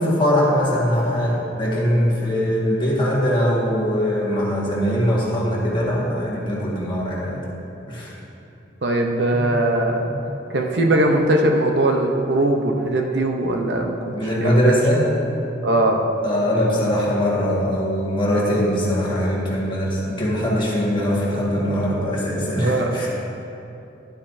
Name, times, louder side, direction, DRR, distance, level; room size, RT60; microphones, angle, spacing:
voice 1, 0.0-7.4 7.9-8.1 9.3-9.5 10.1-10.3 14.1-15.3 16.2-23.1, equal, 25° left, -5 dB, 1.6 m, -21 dB
voice 2, 8.8-10.1 10.5-14.1 14.4-14.6 15.6-16.0 22.6-22.9, right 1 dB, 65° right, 2 dB, 0.7 m, -20 dB
11.5 x 8.7 x 2.7 m, 2.8 s
head